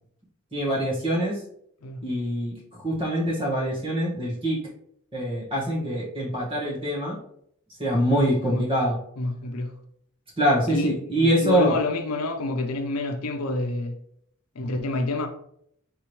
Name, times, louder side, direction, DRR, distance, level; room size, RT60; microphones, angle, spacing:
voice 1, 0.5-1.4 2.0-4.6 5.1-7.2 7.8-9.0 10.4-11.8, equal, 25° right, 1.5 m, -24 dB
voice 2, 9.2-9.7 10.7-14.0 14.5-15.3, left 2 dB, 90° left, 0.7 m, -28 dB
4.8 x 3.6 x 3.0 m
head